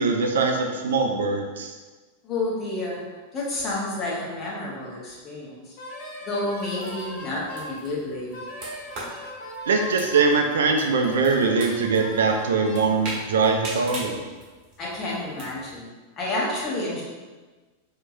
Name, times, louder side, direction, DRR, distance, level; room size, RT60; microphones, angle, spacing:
voice 1, 0.0-1.7 9.7-14.2, right 4 dB, 65° right, 3 dB, 0.4 m, -22 dB
voice 2, 2.2-3.0 3.3-5.7 6.2-8.4 14.8-15.9 16.2-17.0, left 2 dB, 25° left, -6 dB, 1.2 m, -30 dB
Wind instrument woodwind instrument, 5.8-7.8 8.3-10.4 10.9-12.9, equal, 45° left, 1.0 m, -39 dB
sound 1, 6.5-15.8, right 1 dB, 35° right, 1.4 m, -41 dB
4.4 x 2.8 x 2.6 m, 1.3 s
figure-of-eight pair, 90°, 0 cm